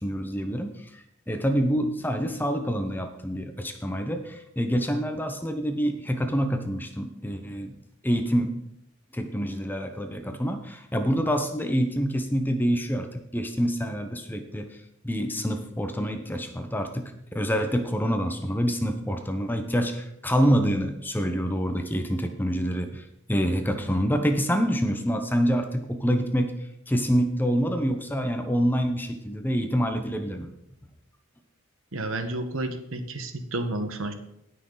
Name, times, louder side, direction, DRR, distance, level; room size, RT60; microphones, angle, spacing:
voice 1, 0.0-7.7 8.0-8.5 9.1-26.5 26.9-30.5, equal, 10° left, 6 dB, 0.8 m, -26 dB
voice 2, 31.9-34.1, right 2 dB, 70° right, 8 dB, 1.2 m, -31 dB
18.0 x 6.3 x 3.9 m, 0.77 s
head